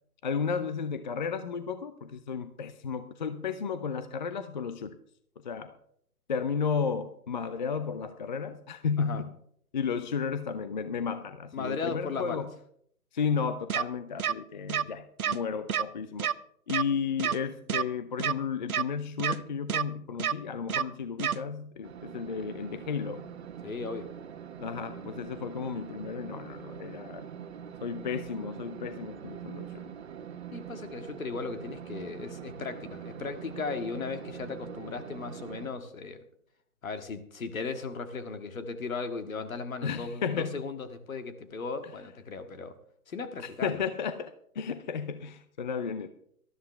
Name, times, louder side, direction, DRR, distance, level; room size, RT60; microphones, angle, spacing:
voice 1, 0.2-5.0 5.4-5.8 6.3-9.3 9.7-12.5 13.1-16.3 16.7-23.3 24.6-27.3 27.8-29.9 39.8-40.6 43.4-46.1, left 6 dB, 30° left, 11 dB, 0.6 m, -33 dB
voice 2, 11.5-12.4 23.6-24.1 30.5-36.2 36.8-42.7 43.1-43.8, left 4 dB, 60° left, 8 dB, 1.9 m, -36 dB
sound 1, 13.7-13.8 14.2-14.3 14.7-14.8 15.2-15.4 15.7-15.8 16.2-16.3 16.7-16.8 17.2-17.4 17.7-17.8 18.2-18.3 18.7-18.8 19.2-19.4 19.7-19.8 20.2-20.3 20.7-20.8 21.2-21.4, right 8 dB, 70° right, 0.8 m, -28 dB
sound 2, 21.8-35.7, right 8 dB, 45° right, 1.3 m, -43 dB
19.0 x 13.0 x 3.4 m, 0.67 s
figure-of-eight pair, 140°, 46 cm